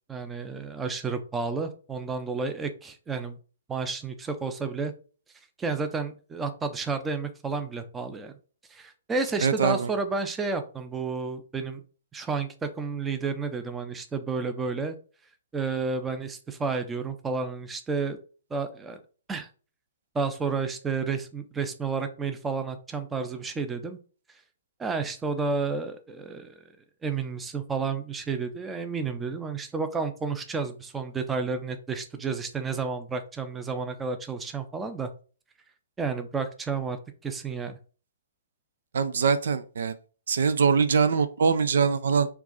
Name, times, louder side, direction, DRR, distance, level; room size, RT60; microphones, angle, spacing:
voice 1, 0.1-3.4 3.7-4.9 5.6-8.3 8.7-11.8 12.1-15.0 15.5-18.2 18.5-19.0 19.3-19.5 20.1-24.0 24.8-26.5 27.0-35.1 36.0-37.0 37.2-37.8, right 4 dB, 10° right, 8 dB, 0.6 m, -31 dB
voice 2, 9.4-9.9 38.9-40.0 40.3-42.3, right 5 dB, 65° right, 12 dB, 0.4 m, -23 dB
4.6 x 2.5 x 3.8 m, 0.37 s
hypercardioid pair, 125°, 0 cm